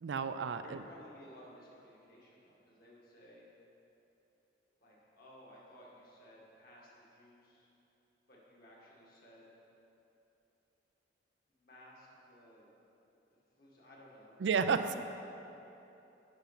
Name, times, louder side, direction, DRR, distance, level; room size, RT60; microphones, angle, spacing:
voice 1, 0.0-0.8 14.4-14.9, right 5 dB, 75° right, 10 dB, 0.4 m, -31 dB
voice 2, 0.6-3.5 4.8-7.7 8.3-9.6 11.5-12.7 13.6-14.3 14.9-15.0, equal, 55° left, -4 dB, 1.9 m, -57 dB
8.9 x 5.9 x 5.8 m, 3.0 s
head